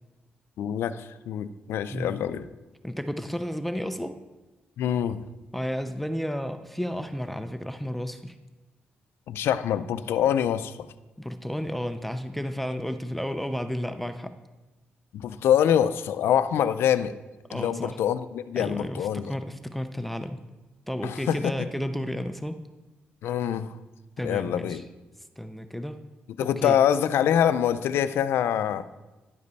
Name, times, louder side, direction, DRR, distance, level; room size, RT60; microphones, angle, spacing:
voice 1, 0.6-2.5 4.8-5.2 9.3-10.8 15.1-17.1 17.5-19.3 21.0-21.5 23.2-23.8 24.2-24.8 26.4-28.8, left 9 dB, 85° left, 13 dB, 0.4 m, -25 dB
voice 2, 2.8-4.2 5.5-8.3 11.2-14.3 17.5-18.0 18.6-20.4 20.9-22.6 24.2-24.8 25.4-26.0 26.4-26.8, equal, 5° left, 8 dB, 0.4 m, -32 dB
10.5 x 5.2 x 4.1 m, 1.1 s
cardioid pair, 105°, 4 cm